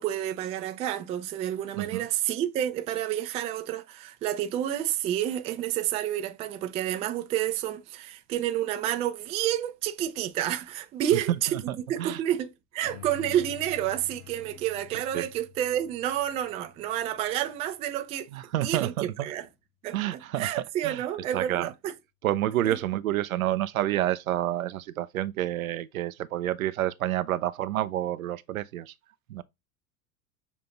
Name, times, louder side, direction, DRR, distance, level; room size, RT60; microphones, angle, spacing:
voice 1, 0.0-18.3 18.6-19.5 19.8-21.9 22.6-22.8, right 11 dB, 15° right, 0.3 m, -30 dB
voice 2, 11.7-12.2 15.1-15.3 18.3-19.3 19.9-20.5 20.8-21.1 21.3-21.7 22.2-28.9 29.3-29.4, right 13 dB, 70° right, 0.5 m, -29 dB
sound 1, 12.8-17.6, left 11 dB, 60° left, 3.1 m, -48 dB
7.0 x 2.5 x 2.8 m
figure-of-eight pair, 75°, 43 cm